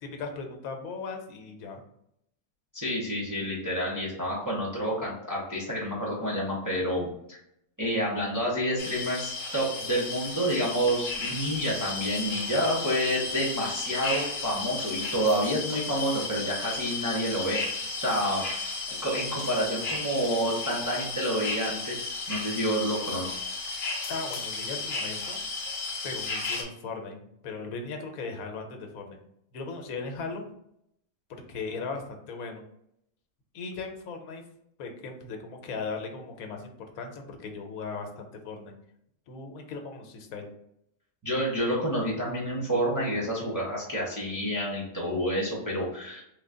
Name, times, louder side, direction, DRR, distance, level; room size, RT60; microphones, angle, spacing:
voice 1, 0.0-1.8 24.1-25.4 26.0-29.2 29.5-30.5 31.3-32.6 33.5-34.4 34.8-38.7 39.3-40.5, left 4 dB, 80° left, 4 dB, 1.1 m, -38 dB
voice 2, 2.7-7.1 7.8-17.6 18.0-18.6 19.0-23.3 41.2-46.2, equal, 20° right, -6 dB, 0.5 m, -29 dB
sound 1, 8.8-26.6, left 3 dB, 50° left, 0.7 m, -34 dB
3.2 x 2.2 x 3.6 m, 0.76 s
omnidirectional pair, 1.5 m